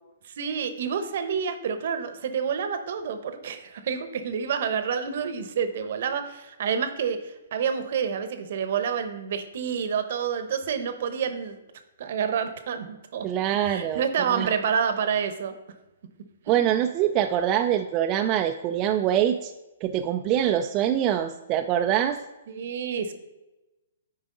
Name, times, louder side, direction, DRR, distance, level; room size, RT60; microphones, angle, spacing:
voice 1, 0.4-11.6 12.0-13.3 13.6-15.5 22.5-23.1, right 7 dB, 60° right, 9 dB, 0.9 m, -28 dB
voice 2, 13.2-14.5 16.5-19.5 19.8-22.2, right 10 dB, 30° right, 5 dB, 0.3 m, -24 dB
9.3 x 4.8 x 3.8 m, 1.0 s
hypercardioid pair, 140°, 0 cm